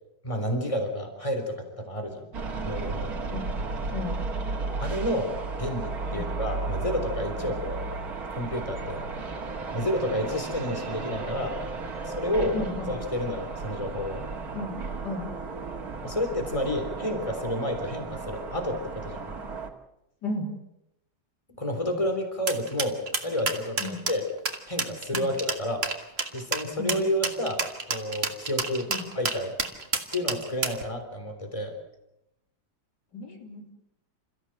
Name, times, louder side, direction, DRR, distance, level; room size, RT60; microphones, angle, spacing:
voice 1, 0.2-2.2 2.7-3.1 4.8-8.0 8.3-9.0 9.7-11.6 12.1-12.6 12.9-14.2 16.0-19.2 21.6-24.3 24.7-25.9 26.3-29.5 30.1-31.8, left 1 dB, 20° left, 5 dB, 3.6 m, -30 dB
sound 1, 2.3-19.7, right 3 dB, 60° right, 2.5 m, -34 dB
voice 2, 12.5-12.9 14.5-14.8 15.0-15.3 20.2-20.5 23.8-24.0 25.1-25.3 26.8-27.0 28.9-29.0 33.1-33.7, left 2 dB, 85° left, 2 dB, 3.9 m, -34 dB
sound 2, 22.5-30.8, right 4 dB, 40° right, 2.0 m, -29 dB
28.0 x 15.0 x 7.7 m, 0.86 s
omnidirectional pair, 1.8 m